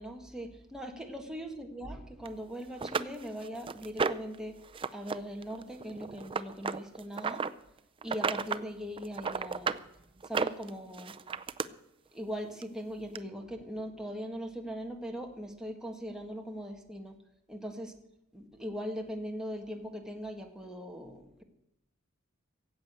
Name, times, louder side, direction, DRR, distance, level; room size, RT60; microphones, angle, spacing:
voice 1, 0.0-4.6 4.9-7.5 8.0-9.8 10.2-11.2 11.7-11.8 12.1-17.2 17.5-17.9 18.3-21.4, equal, 5° right, 2 dB, 1.6 m, -40 dB
sound 1, 2.3-2.4 2.8-4.4 4.7-5.2 5.4-7.5 8.0-8.6 9.0-9.8 10.2-11.7 12.6-12.7 13.2-13.3, right 5 dB, 25° right, 0.5 m, -33 dB
16.0 x 8.1 x 8.1 m, 0.84 s
head